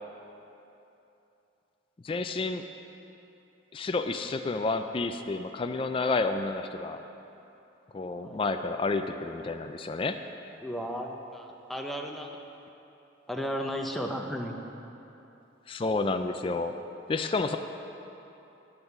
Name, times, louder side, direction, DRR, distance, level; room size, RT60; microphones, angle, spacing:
voice 1, 2.0-2.7 3.7-7.0 7.9-10.2 15.7-16.8 17.1-17.6, left 3 dB, 25° left, 7 dB, 0.3 m, -30 dB
voice 2, 10.6-12.3 13.3-14.6, equal, ahead, 1 dB, 0.7 m, -34 dB
10.5 x 9.0 x 5.8 m, 2.9 s
head